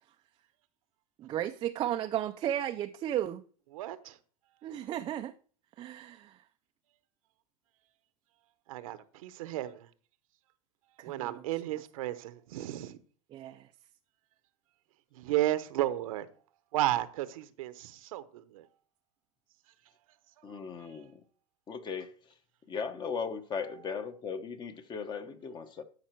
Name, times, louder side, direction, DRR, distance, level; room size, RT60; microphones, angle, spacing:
voice 1, 1.2-3.4 4.6-5.3 5.8-6.4 11.0-11.4 13.3-13.7, right 11 dB, 25° right, 0.4 m, -34 dB
voice 2, 3.7-4.1 8.7-9.9 11.0-13.0 15.2-16.3 16.7-18.6, right 14 dB, 75° right, 0.9 m, -33 dB
voice 3, 20.4-21.2 21.7-22.1 22.7-25.8, left 6 dB, 25° left, 1.0 m, -37 dB
13.0 x 5.6 x 4.5 m
supercardioid pair, 135°, 18 cm